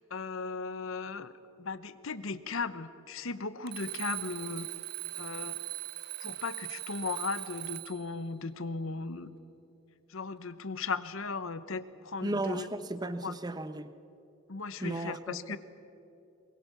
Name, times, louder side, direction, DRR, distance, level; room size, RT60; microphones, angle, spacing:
voice 1, 0.0-1.3 1.6-4.7 5.2-5.6 6.2-9.3 10.1-12.7 13.2-13.4 14.5-15.6, left 4 dB, 65° left, 14 dB, 0.9 m, -37 dB
Alarm, 3.7-8.1, right 16 dB, 45° right, 0.9 m, -40 dB
voice 2, 12.2-13.9 14.8-15.6, right 2 dB, 20° right, 11 dB, 0.8 m, -35 dB
23.0 x 21.5 x 7.1 m, 2.9 s
head